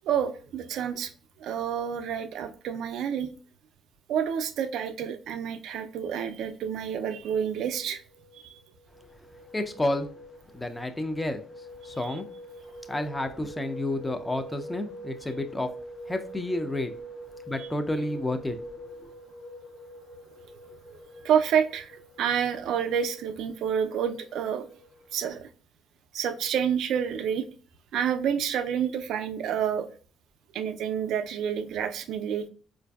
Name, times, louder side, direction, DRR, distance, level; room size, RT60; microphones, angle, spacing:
voice 1, 0.0-1.1 1.4-3.3 4.1-8.0 8.3-8.6 12.0-12.2 17.6-17.7 20.9-21.0 21.2-24.7 25.1-25.5 26.1-27.4 27.9-29.9 30.5-32.5, right 8 dB, 80° right, 0.3 m, -29 dB
sound 1, 7.7-25.3, right 1 dB, 70° left, 0.8 m, -45 dB
voice 2, 9.5-10.1 10.5-11.4 11.8-12.2 12.9-15.7 16.1-16.9 17.5-18.6 19.0-19.1, left 1 dB, 15° left, 0.4 m, -30 dB
4.5 x 2.5 x 2.2 m
cardioid pair, 90°, 0 cm